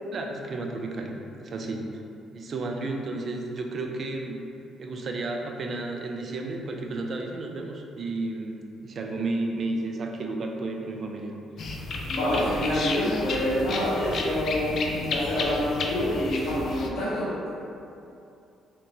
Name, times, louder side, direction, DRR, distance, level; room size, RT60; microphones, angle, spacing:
voice 1, 0.1-2.0 2.3-4.4 4.8-11.8, right 2 dB, 45° right, 2 dB, 0.4 m, -32 dB
sound 1, 11.6-16.9, left 3 dB, 55° left, 0.4 m, -32 dB
voice 2, 12.1-17.3, left 1 dB, 80° left, -10 dB, 1.1 m, -26 dB
3.3 x 2.8 x 3.0 m, 2.7 s
cardioid pair, 110°, 0 cm